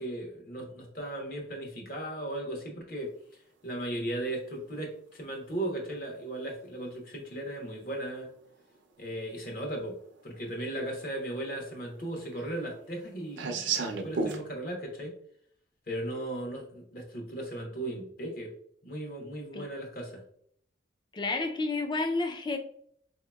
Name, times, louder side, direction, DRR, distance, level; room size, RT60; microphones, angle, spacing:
voice 1, 0.0-3.1 3.6-8.3 9.0-10.0 10.2-15.2 15.9-18.5 18.8-20.2, right 1 dB, 50° left, 0.9 m, -36 dB
sound 1, 7.8-7.9 9.2-9.3 9.8-9.9 10.1-10.8 11.1-14.4, right 4 dB, 70° right, 0.5 m, -33 dB
voice 2, 21.1-22.6, left 3 dB, 25° left, 0.4 m, -30 dB
4.1 x 2.8 x 2.3 m
head